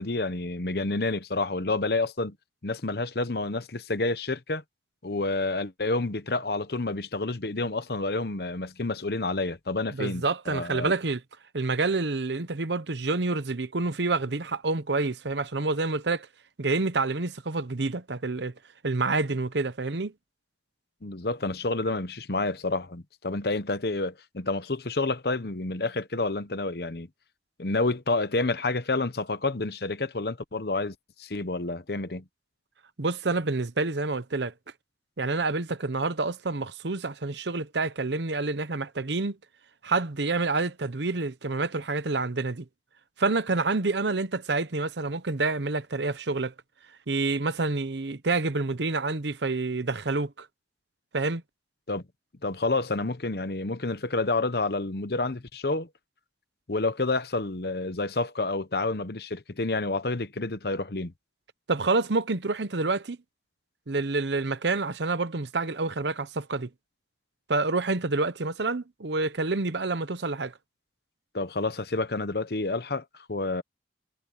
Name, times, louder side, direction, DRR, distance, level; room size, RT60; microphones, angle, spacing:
voice 1, 0.0-2.4 2.6-4.6 5.0-10.9 21.0-27.1 27.6-32.2 51.9-52.0 52.4-55.9 56.7-61.1 71.3-73.6, left 2 dB, 60° left, 1.0 m, -29 dB
voice 2, 10.0-11.2 11.5-16.3 16.6-18.5 18.8-20.1 33.0-34.5 35.2-39.4 39.8-42.7 43.2-46.5 47.1-50.5 51.1-51.4 61.7-63.2 63.9-66.7 67.5-70.5, right 3 dB, 75° right, 0.9 m, -28 dB
head